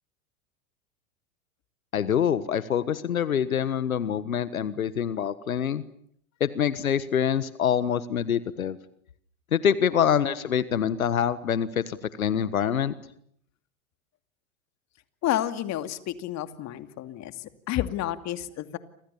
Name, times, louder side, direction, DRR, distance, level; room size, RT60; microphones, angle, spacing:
voice 1, 1.9-5.8 6.4-8.8 9.5-12.9, left 8 dB, 90° left, 15 dB, 1.5 m, -25 dB
voice 2, 15.2-18.8, left 12 dB, 40° left, 10 dB, 2.6 m, -30 dB
29.5 x 26.0 x 7.1 m, 0.66 s
hypercardioid pair, 100°, 41 cm